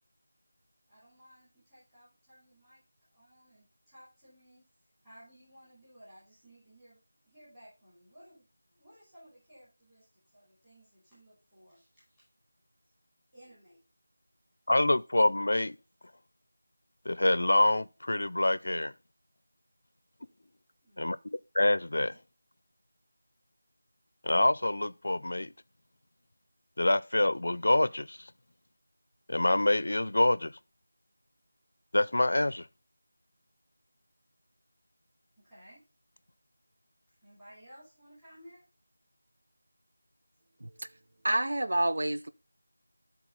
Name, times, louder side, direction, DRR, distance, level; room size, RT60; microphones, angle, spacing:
voice 1, 0.9-2.8 3.1-4.7 5.0-12.3 13.3-13.8 20.8-21.1 35.4-35.8 37.2-38.6, equal, 10° right, 5.6 m, -57 dB
voice 2, 14.7-15.8 17.0-18.9 21.0-22.1 24.2-25.5 26.8-28.3 29.3-30.5 31.9-32.7, left 1 dB, 65° left, 0.6 m, -26 dB
voice 3, 41.2-42.3, right 1 dB, 60° right, 0.9 m, -28 dB
12.0 x 4.1 x 5.7 m
figure-of-eight pair, 175°, 0 cm